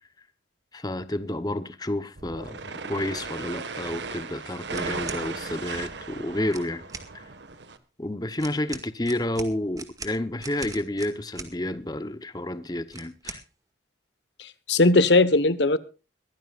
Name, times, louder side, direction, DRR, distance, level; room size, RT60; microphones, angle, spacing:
voice 1, 0.7-6.8 7.1-7.2 8.0-13.4, left 1 dB, 20° left, 0.9 m, -30 dB
sound 1, 2.2-7.8, right 4 dB, 80° right, 1.6 m, -36 dB
sound 2, 4.7-5.2 6.4-7.1 8.4-11.5 12.9-13.4, right 4 dB, 20° right, 2.0 m, -40 dB
voice 2, 14.4-15.8, left 2 dB, 80° left, 1.2 m, -19 dB
22.5 x 15.5 x 2.5 m
head